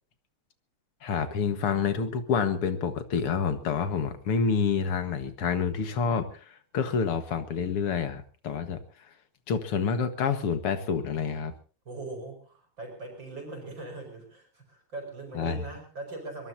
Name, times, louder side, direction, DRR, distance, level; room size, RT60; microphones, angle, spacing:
voice 1, 1.0-6.4 6.7-8.8 9.5-11.5 15.4-15.6, left 6 dB, 85° left, 10 dB, 2.5 m, -28 dB
voice 2, 11.9-16.5, right 2 dB, 55° right, 4 dB, 5.8 m, -40 dB
23.5 x 21.5 x 2.8 m, 0.38 s
omnidirectional pair, 2.4 m